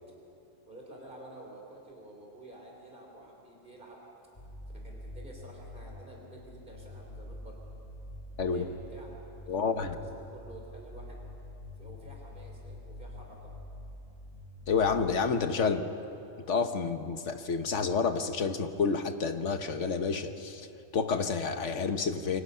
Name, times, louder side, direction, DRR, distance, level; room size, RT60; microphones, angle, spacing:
voice 1, 0.7-4.0 4.8-7.6 8.5-11.2 11.8-13.5, right 1 dB, 40° right, -1 dB, 3.8 m, -50 dB
sound 1, 4.4-15.2, left 1 dB, 25° left, 2.0 m, -46 dB
voice 2, 9.5-9.9 14.7-15.9 16.5-20.7 20.9-22.4, left 5 dB, 70° left, 8 dB, 1.4 m, -29 dB
28.0 x 23.5 x 5.7 m, 2.9 s
omnidirectional pair, 1.3 m